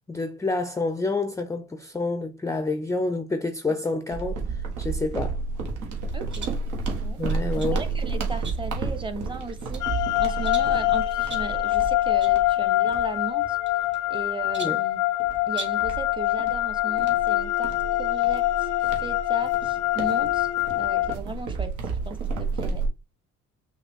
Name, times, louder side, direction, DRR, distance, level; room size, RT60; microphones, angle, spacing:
voice 1, 0.1-5.4 7.2-7.9 14.6-14.8, left 3 dB, 10° left, 0.4 m, -28 dB
sound 1, 4.1-14.0 14.4-14.6 15.2-22.9, right 4 dB, 80° right, 1.3 m, -32 dB
voice 2, 6.1-6.6 7.0-7.2 7.6-13.6 14.1-15.0 15.5-18.7 19.0-21.7 22.1-22.8, right 3 dB, 15° right, 0.9 m, -36 dB
sound 2, 6.3-6.7 7.3-7.8 8.4-8.9 9.4-9.9 10.4-10.8 11.3-11.6 12.2-12.4 12.7-12.8 13.6-14.2 14.5-14.9 15.5-15.9, right 3 dB, 35° right, 1.4 m, -40 dB
sound 3, 9.8-21.2, left 17 dB, 80° left, 0.4 m, -24 dB
5.8 x 2.4 x 3.5 m
cardioid pair, 90°, 30 cm